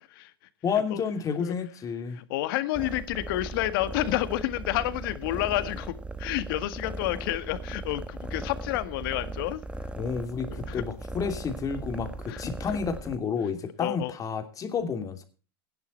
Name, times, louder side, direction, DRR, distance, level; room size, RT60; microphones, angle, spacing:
voice 1, 0.6-2.2 10.0-15.2, left 6 dB, 25° left, 7 dB, 3.0 m, -30 dB
voice 2, 2.1-9.6 10.5-10.8 12.3-12.8 13.8-14.1, left 15 dB, 65° left, 12 dB, 1.7 m, -30 dB
sound 1, 2.7-13.2, right 2 dB, 10° right, 1.2 m, -38 dB
17.0 x 10.5 x 4.5 m, 0.36 s
hypercardioid pair, 115°, 13 cm